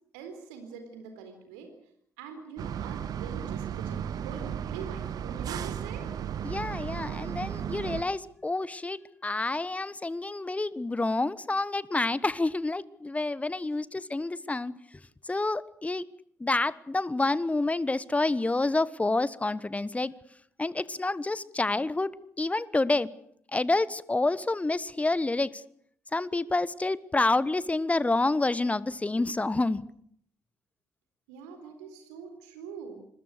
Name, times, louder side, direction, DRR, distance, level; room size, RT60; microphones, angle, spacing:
voice 1, 0.1-1.7 2.2-6.1 13.8-13.9 31.3-33.0, right 6 dB, 75° right, 6 dB, 4.1 m, -43 dB
sound 1, 2.6-8.0, right 9 dB, 55° right, 1.6 m, -35 dB
voice 2, 6.4-14.7 15.3-16.1 16.4-20.1 20.6-22.1 22.4-23.1 23.5-25.5 26.1-29.8, left 2 dB, 20° left, 20 dB, 1.3 m, -28 dB
28.0 x 21.5 x 6.6 m, 0.66 s
figure-of-eight pair, 45°, 8 cm